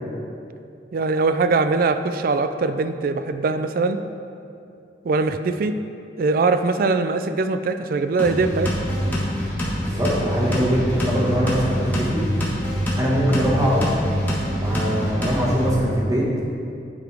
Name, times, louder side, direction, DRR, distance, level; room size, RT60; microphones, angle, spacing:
voice 1, 0.9-4.0 5.0-5.7 6.2-8.7, right 3 dB, 55° right, 9 dB, 0.3 m, -21 dB
sound 1, 8.2-15.7, equal, 10° left, 1.4 m, -25 dB
voice 2, 9.8-12.2 13.0-13.9 14.6-16.3, equal, 20° right, -5 dB, 1.3 m, -22 dB
9.5 x 4.1 x 4.7 m, 2.6 s
head